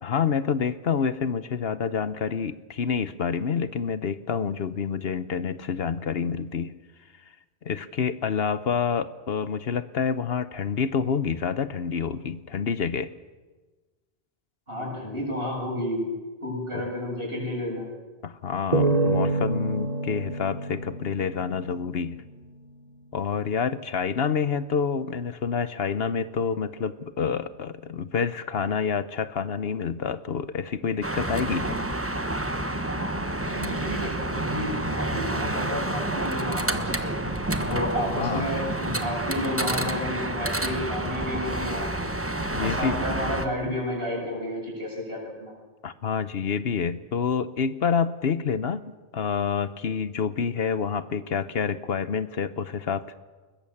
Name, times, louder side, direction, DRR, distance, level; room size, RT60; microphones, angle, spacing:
voice 1, 0.0-6.8 7.6-13.1 16.7-16.9 18.2-22.2 23.1-31.8 37.7-37.8 38.1-38.5 42.5-43.0 45.8-48.8 49.1-53.1, left 6 dB, 65° left, 14 dB, 1.1 m, -28 dB
voice 2, 14.7-16.1 16.4-17.9 33.4-37.2 37.7-42.1 42.6-45.5, left 1 dB, 60° right, -1 dB, 7.8 m, -31 dB
sound 1, 18.7-22.1, right 2 dB, 35° right, 1.4 m, -27 dB
sound 2, 31.0-43.5, right 1 dB, 15° right, 1.2 m, -29 dB
21.5 x 21.0 x 7.2 m, 1.3 s
omnidirectional pair, 1.1 m